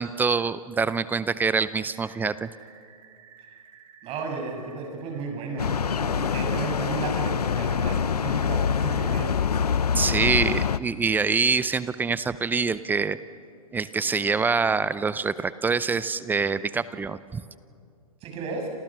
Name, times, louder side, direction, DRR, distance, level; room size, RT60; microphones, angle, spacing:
voice 1, 0.0-2.5 9.9-13.2 13.7-17.4, right 5 dB, 10° right, 16 dB, 0.5 m, -25 dB
sound 1, 1.6-9.4, right 7 dB, 55° right, 3.6 m, -53 dB
voice 2, 4.0-9.3 18.2-18.7, right 3 dB, 30° right, 3 dB, 6.8 m, -33 dB
sound 2, 5.6-10.8, left 7 dB, 85° left, 0.8 m, -25 dB
28.5 x 28.0 x 6.1 m, 2.3 s
hypercardioid pair, 125°, 19 cm